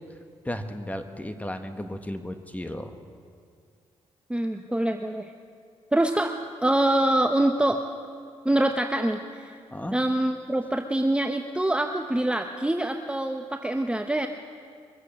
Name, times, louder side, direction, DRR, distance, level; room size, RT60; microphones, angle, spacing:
voice 1, 0.4-2.9 9.7-10.0, left 1 dB, 10° left, 8 dB, 1.4 m, -34 dB
voice 2, 4.3-5.3 5.9-7.8 8.4-9.6 9.9-14.3, right 1 dB, 10° right, 5 dB, 0.8 m, -25 dB
23.0 x 8.2 x 7.5 m, 2.2 s
supercardioid pair, 55°, 12 cm